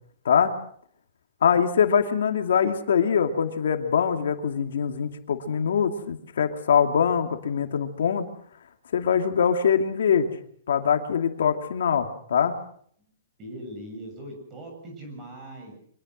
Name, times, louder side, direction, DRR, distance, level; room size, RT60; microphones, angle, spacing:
voice 1, 1.4-8.3 8.9-10.3 10.7-12.5, left 7 dB, 70° left, 6 dB, 2.6 m, -23 dB
voice 2, 13.4-15.8, right 1 dB, 15° right, 2 dB, 7.6 m, -40 dB
25.0 x 20.5 x 6.5 m, 0.62 s
hypercardioid pair, 180°, 0 cm